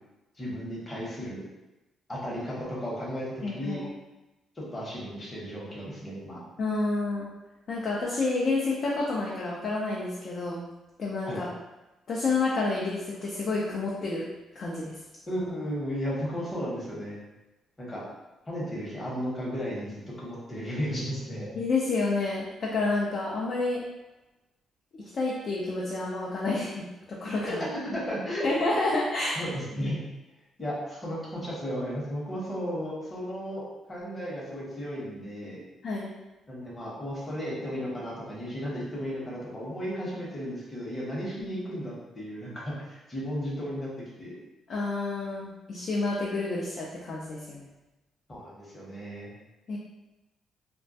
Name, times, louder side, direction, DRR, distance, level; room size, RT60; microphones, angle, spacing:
voice 1, 0.4-1.4 2.1-3.8 4.6-6.4 11.3-11.4 15.3-17.2 17.8-18.0 18.5-21.5 27.4-28.5 29.4-30.0 30.6-33.6 33.9-35.6 36.5-43.9 44.2-44.4 48.3-49.3, equal, 25° left, -5 dB, 0.9 m, -34 dB
voice 2, 3.4-3.9 6.6-7.3 7.7-10.6 11.0-11.5 12.1-14.3 14.6-15.0 21.6-23.8 25.1-27.6 28.4-29.4 35.8-36.1 41.5-41.6 44.7-47.7 49.7-49.8, left 3 dB, 55° left, -4 dB, 0.4 m, -29 dB
2.2 x 2.1 x 2.6 m, 1.0 s
cardioid pair, 90°, 0 cm